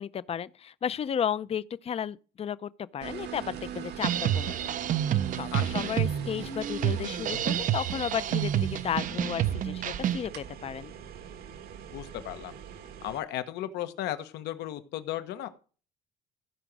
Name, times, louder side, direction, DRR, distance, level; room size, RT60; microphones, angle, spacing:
voice 1, 0.0-4.7 5.3-10.9, left 8 dB, 35° left, 0.6 m, -33 dB
sound 1, 3.0-13.2, right 7 dB, 75° right, 1.5 m, -41 dB
sound 2, 4.0-10.3, right 11 dB, 50° right, 0.6 m, -29 dB
voice 2, 5.5-5.9 11.9-12.5 13.0-15.5, left 13 dB, 85° left, 1.2 m, -35 dB
15.0 x 5.1 x 6.1 m
cardioid pair, 110°, 17 cm